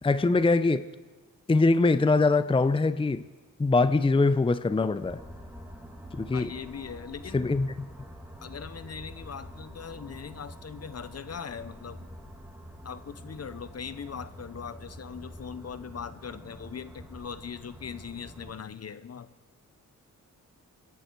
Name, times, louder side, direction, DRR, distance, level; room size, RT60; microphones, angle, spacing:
voice 1, 0.0-0.8 1.5-3.2 3.6-5.2 6.1-6.5 7.3-7.7, left 3 dB, 15° left, 0.6 m, -23 dB
sound 1, 5.0-18.5, equal, 5° right, 2.5 m, -46 dB
voice 2, 6.3-7.6 8.4-12.1 12.8-19.3, left 7 dB, 50° left, 0.8 m, -40 dB
25.5 x 11.0 x 4.6 m
cardioid pair, 60°, 33 cm